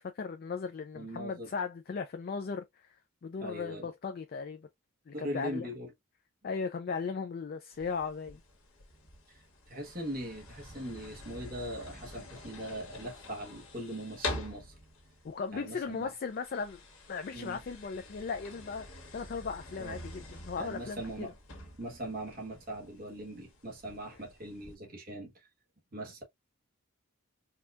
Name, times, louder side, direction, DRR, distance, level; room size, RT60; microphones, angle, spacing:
voice 1, 0.0-2.9 3.2-4.7 5.1-5.7 6.4-8.4 15.2-16.8 17.1-18.8 19.1-21.0, left 5 dB, 45° left, 0.3 m, -37 dB
voice 2, 0.9-1.5 3.4-3.9 5.1-5.9 9.3-9.4 9.7-14.7 15.5-16.1 17.3-17.6 19.8-20.0 20.6-21.3 21.8-25.5 25.9-26.2, equal, 40° right, 1.0 m, -40 dB
sound 1, 7.7-24.7, left 2 dB, 75° left, 1.4 m, -46 dB
4.3 x 2.3 x 2.3 m
head